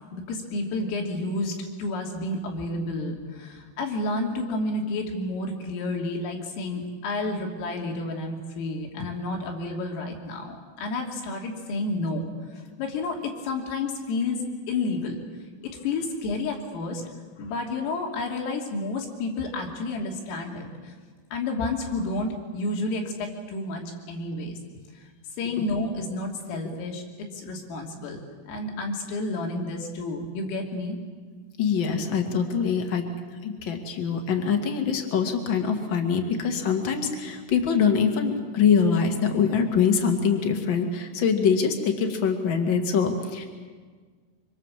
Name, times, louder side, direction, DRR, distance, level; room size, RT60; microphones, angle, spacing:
voice 1, 0.1-15.2 15.6-17.0 17.4-20.9 21.3-24.6 25.4-27.0 27.3-31.0, left 2 dB, 80° left, 1 dB, 5.4 m, -30 dB
voice 2, 31.6-33.0 33.4-43.4, left 6 dB, 60° left, 4 dB, 1.3 m, -24 dB
25.5 x 25.5 x 7.5 m, 1.6 s
omnidirectional pair, 5.8 m